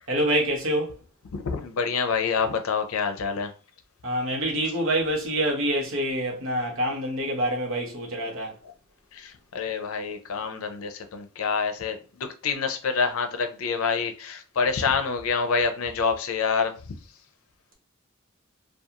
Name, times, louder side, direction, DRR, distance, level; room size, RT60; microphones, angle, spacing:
voice 1, 0.1-0.9 4.0-8.5, right 1 dB, 70° right, 0.9 m, -26 dB
voice 2, 1.3-3.5 8.6-8.7 9.1-16.8, left 5 dB, 90° left, 0.5 m, -27 dB
2.8 x 2.3 x 2.4 m
head